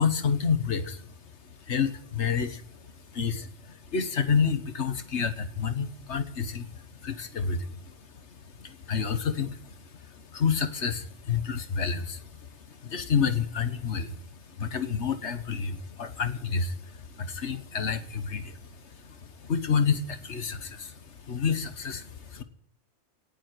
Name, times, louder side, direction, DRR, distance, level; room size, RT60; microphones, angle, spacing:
voice 1, 0.0-22.4, left 6 dB, 65° left, 10 dB, 1.8 m, -30 dB
18.5 x 7.6 x 9.6 m, 0.64 s
omnidirectional pair, 1.2 m